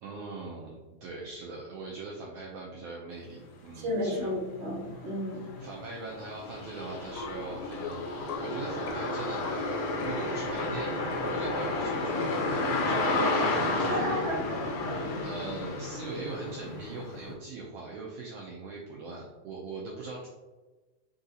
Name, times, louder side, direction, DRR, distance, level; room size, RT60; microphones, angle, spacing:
voice 1, 0.0-4.3 5.6-8.0 8.4-14.1 15.2-20.3, right 3 dB, 85° right, -3 dB, 1.4 m, -41 dB
voice 2, 3.7-5.4 13.9-14.4 14.9-15.0, equal, 35° right, -7 dB, 1.1 m, -32 dB
sound 1, 3.9-4.0 4.5-17.3, left 2 dB, 70° left, 1.9 m, -32 dB
sound 2, 7.2-12.0, left 3 dB, 90° left, 2.1 m, -41 dB
4.8 x 2.7 x 3.8 m, 1.2 s
omnidirectional pair, 3.4 m